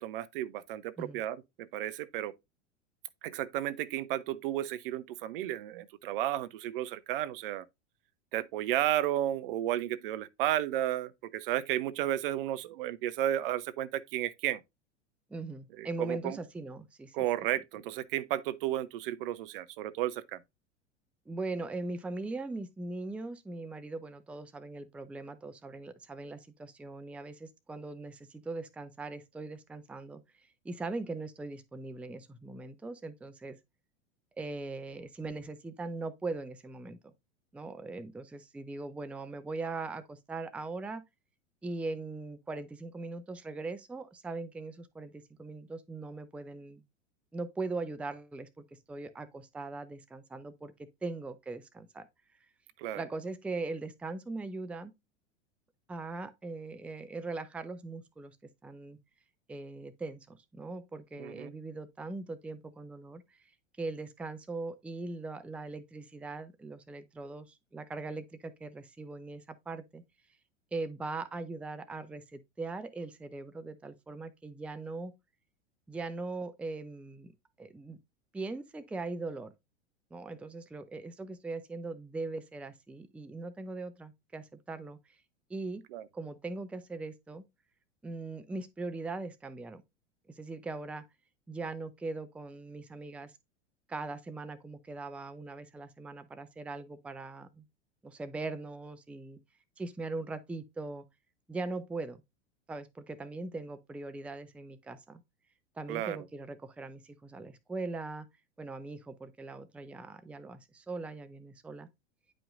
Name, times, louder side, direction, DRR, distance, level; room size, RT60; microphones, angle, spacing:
voice 1, 0.0-2.3 3.2-7.6 8.3-14.6 15.8-16.4 17.1-20.4 52.8-53.0 61.2-61.5 85.9-86.1 105.9-106.2, right 13 dB, 50° right, 0.7 m, -33 dB
voice 2, 15.3-17.2 21.3-33.6 34.4-37.0 37.5-41.0 41.6-46.8 47.3-50.7 51.0-52.1 52.9-54.9 55.9-58.4 58.6-59.0 59.5-63.2 63.8-70.0 70.7-75.1 75.9-77.3 77.6-78.0 78.3-79.5 80.1-85.0 85.5-85.8 86.1-87.4 88.0-89.8 90.4-91.0 91.5-93.3 93.9-97.6 98.0-99.4 99.8-101.0 101.5-102.2 102.7-105.2 105.8-108.3 108.6-111.9, right 3 dB, 5° right, 0.5 m, -40 dB
10.0 x 5.1 x 2.5 m
figure-of-eight pair, 90°, 36 cm